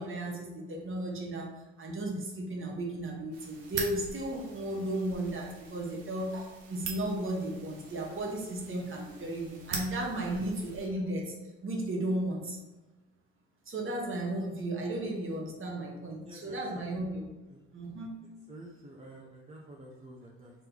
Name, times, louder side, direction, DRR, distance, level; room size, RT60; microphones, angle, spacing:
voice 1, 0.0-1.5 1.8-11.3 11.6-12.6 13.7-17.3 17.7-18.2, right 1 dB, 40° right, -1 dB, 1.2 m, -34 dB
sound 1, 3.3-10.9, right 4 dB, 80° right, 0.8 m, -43 dB
voice 2, 16.2-16.9 17.5-17.6 18.5-20.5, right 1 dB, 20° right, -2 dB, 0.7 m, -49 dB
3.2 x 3.0 x 3.8 m, 1.1 s
hypercardioid pair, 60°, 32 cm